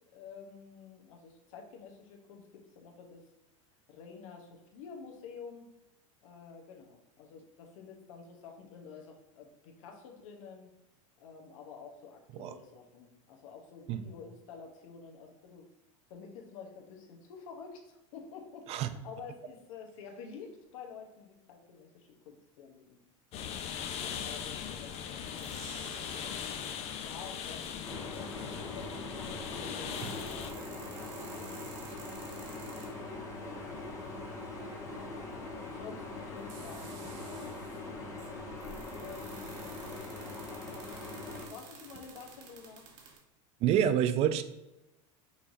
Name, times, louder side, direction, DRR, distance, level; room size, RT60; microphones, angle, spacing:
voice 1, 0.1-3.2 3.9-5.7 6.2-10.7 11.2-15.7 16.1-23.0 24.0-26.4 27.0-29.1 29.5-31.5 35.3-37.6 39.0-39.8 41.5-42.8, left 5 dB, 80° left, 2 dB, 1.0 m, -50 dB
sound 1, 23.3-30.5, left 8 dB, 40° left, 0.5 m, -39 dB
sound 2, 25.3-26.8 28.3-28.4 29.7-33.2 35.4-35.5 36.4-37.9 38.2-43.2, right 5 dB, 70° right, 1.1 m, -52 dB
sound 3, 27.8-41.5, left 2 dB, 15° left, 1.1 m, -42 dB
voice 2, 43.6-44.4, right 9 dB, 40° right, 11 dB, 0.4 m, -28 dB
5.6 x 3.1 x 2.7 m, 0.95 s
supercardioid pair, 125°, 17 cm